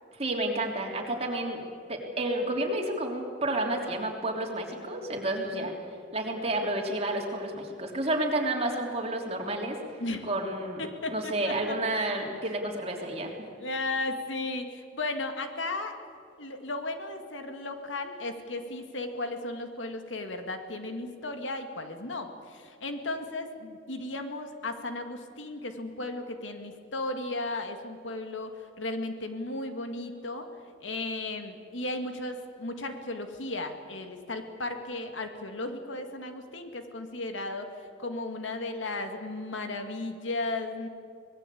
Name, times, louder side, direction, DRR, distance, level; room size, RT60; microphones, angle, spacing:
voice 1, 0.2-1.6 1.9-5.7 6.1-9.8 10.2-10.8 11.1-13.3, right 1 dB, 35° right, 1 dB, 3.3 m, -30 dB
voice 2, 10.8-11.8 13.6-15.9 16.4-30.5 30.8-37.7 38.0-40.9, left 2 dB, 90° left, 6 dB, 2.2 m, -35 dB
24.5 x 19.5 x 8.6 m, 2.4 s
head